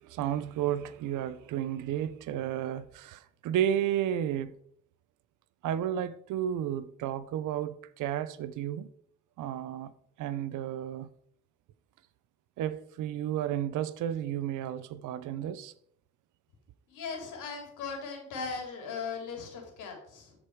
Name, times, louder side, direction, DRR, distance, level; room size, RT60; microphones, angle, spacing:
voice 1, 0.0-4.5 5.6-8.9 9.4-9.9 10.2-11.1 12.6-15.7, right 10 dB, 85° right, 0.7 m, -32 dB
voice 2, 16.9-20.3, left 5 dB, 90° left, 3.1 m, -38 dB
13.0 x 5.1 x 4.7 m
cardioid pair, 90°, 30 cm